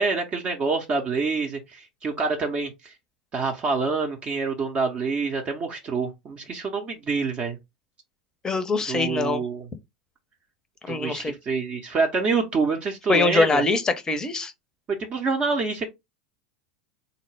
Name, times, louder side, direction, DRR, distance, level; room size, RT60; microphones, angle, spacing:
voice 1, 0.0-2.9 3.3-7.6 8.9-9.7 10.9-13.6 14.9-15.9, right 4 dB, 30° right, 0.7 m, -26 dB
voice 2, 8.4-9.4 10.9-11.3 13.1-14.5, left 3 dB, 15° left, 0.6 m, -23 dB
3.7 x 2.1 x 3.2 m
figure-of-eight pair, 85°, 4 cm